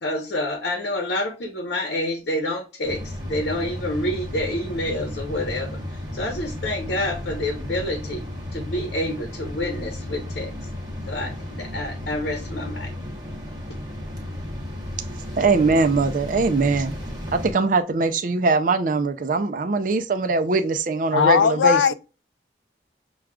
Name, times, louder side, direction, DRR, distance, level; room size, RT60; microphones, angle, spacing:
voice 1, 0.0-8.2 8.5-10.5 11.1-12.9, left 1 dB, 65° left, 0.8 m, -28 dB
sound 1, 2.8-17.5, left 1 dB, 20° right, 0.9 m, -33 dB
voice 2, 15.4-16.9 17.3-21.9, right 3 dB, 45° right, 0.4 m, -21 dB
voice 3, 21.1-21.9, left 7 dB, 85° left, 0.3 m, -18 dB
6.2 x 2.3 x 2.3 m
head